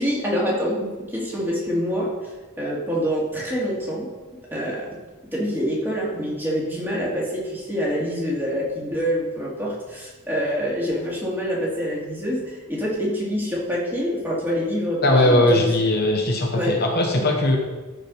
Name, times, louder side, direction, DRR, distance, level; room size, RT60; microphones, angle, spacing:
voice 1, 0.0-2.3 2.6-4.1 4.5-4.9 5.3-15.7 16.5-16.8, equal, 10° right, -5 dB, 2.3 m, -26 dB
voice 2, 15.0-17.6, left 1 dB, 45° left, 2 dB, 1.0 m, -19 dB
13.0 x 5.0 x 5.2 m, 1.3 s
head